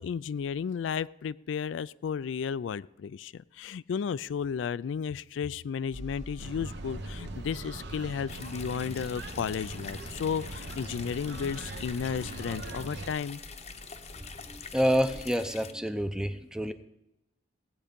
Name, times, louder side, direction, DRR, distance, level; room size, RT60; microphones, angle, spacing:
voice 1, 0.0-13.4, left 7 dB, 80° left, 18 dB, 0.3 m, -33 dB
sound 1, 5.9-15.2, equal, 40° right, 1.6 m, -48 dB
sound 2, 6.4-13.1, right 2 dB, 65° right, 0.9 m, -41 dB
sound 3, 8.3-15.7, left 6 dB, 35° left, 0.7 m, -46 dB
voice 2, 14.2-16.7, equal, 5° right, 10 dB, 0.6 m, -28 dB
17.0 x 8.5 x 5.2 m, 0.88 s
head